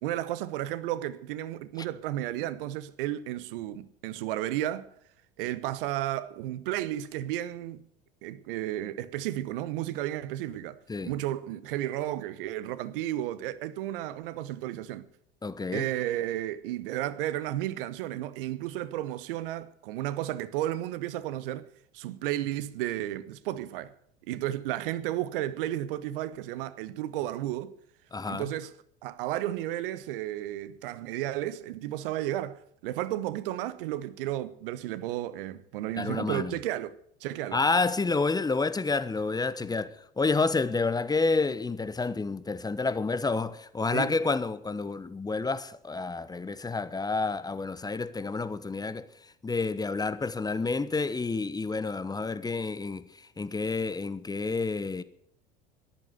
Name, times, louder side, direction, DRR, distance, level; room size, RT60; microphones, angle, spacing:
voice 1, 0.0-4.9 5.4-7.9 8.2-10.8 11.0-15.1 15.7-21.7 21.9-23.9 24.3-27.7 28.3-28.7 29.0-37.6 43.9-44.1, right 13 dB, 65° right, 1.1 m, -33 dB
voice 2, 15.4-15.9 28.1-28.5 36.0-36.6 37.5-49.1 49.4-55.0, left 3 dB, 15° left, 1.0 m, -29 dB
13.5 x 11.0 x 7.9 m
hypercardioid pair, 75°, 29 cm